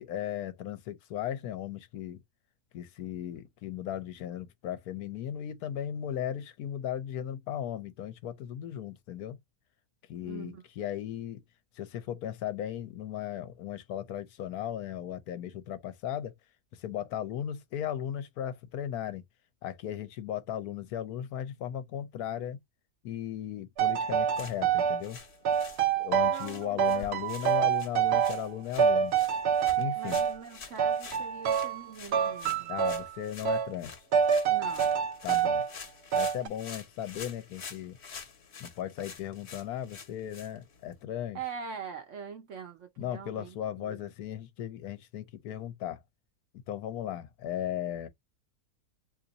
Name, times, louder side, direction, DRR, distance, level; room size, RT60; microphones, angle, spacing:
voice 1, 0.0-2.2 2.7-9.4 10.1-11.4 11.8-16.3 16.7-19.2 19.6-22.6 23.0-25.2 26.0-29.1 29.7-30.2 32.7-33.9 35.2-35.6 36.1-38.0 38.6-41.4 43.0-46.0 46.7-48.1, left 10 dB, 75° left, 1.1 m, -36 dB
voice 2, 10.2-10.6 26.2-27.2 30.0-32.8 34.5-35.0 41.3-44.1, right 6 dB, 60° right, 0.9 m, -43 dB
sound 1, 23.8-25.0 25.5-26.5 26.8-28.5 28.8-30.4 30.8-31.8 32.1-33.1 33.5-33.7 34.1-35.7 36.1-36.5, right 8 dB, 80° right, 0.5 m, -26 dB
sound 2, 24.2-41.0, left 5 dB, 50° left, 1.1 m, -48 dB
2.9 x 2.5 x 3.9 m
omnidirectional pair, 1.7 m